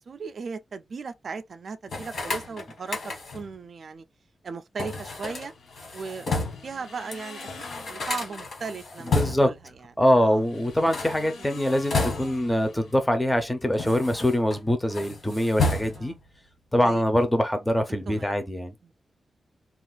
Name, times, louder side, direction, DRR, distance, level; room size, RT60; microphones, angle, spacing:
voice 1, 0.0-4.1 4.4-5.5 5.9-9.6 10.2-10.4 11.4-11.5 16.0-16.2 16.8-17.0 18.1-18.4 18.8-18.9, right 5 dB, 50° right, 0.3 m, -37 dB
sound 1, 1.9-3.5 4.8-6.7 7.1-7.2 7.4-9.6 10.7-12.6 13.3-14.6 14.9-16.2, left 3 dB, 60° left, 1.3 m, -31 dB
sound 2, 5.5-8.6 10.1-13.4, left 4 dB, 85° left, 0.7 m, -46 dB
voice 2, 9.1-9.5 10.0-16.1 16.7-18.7, equal, 5° left, 0.5 m, -23 dB
2.4 x 2.4 x 3.8 m
wide cardioid pair, 160°, 0 cm